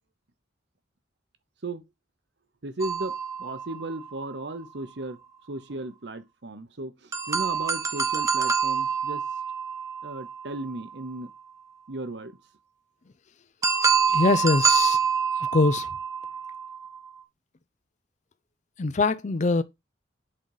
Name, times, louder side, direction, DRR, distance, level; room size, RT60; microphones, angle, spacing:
voice 1, 2.6-5.2 5.5-9.2 10.0-11.3 11.9-12.4, right 2 dB, 70° right, 0.9 m, -35 dB
sound 1, 2.8-4.5 7.1-11.0 13.6-17.1, right 6 dB, 15° right, 0.7 m, -26 dB
voice 2, 14.1-15.0 15.4-15.9 18.8-19.6, left 3 dB, 40° left, 0.5 m, -23 dB
7.6 x 4.0 x 4.8 m
head